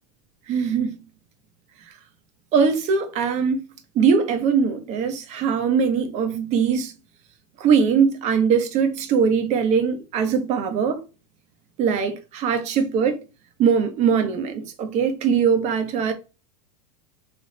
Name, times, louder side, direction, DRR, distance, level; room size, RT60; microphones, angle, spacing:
voice 1, 0.5-1.0 2.5-3.6 3.9-6.9 7.6-11.0 11.8-13.2 13.6-16.1, right 6 dB, 35° right, 0.9 m, -21 dB
3.4 x 3.1 x 3.9 m
supercardioid pair, 150°, 21 cm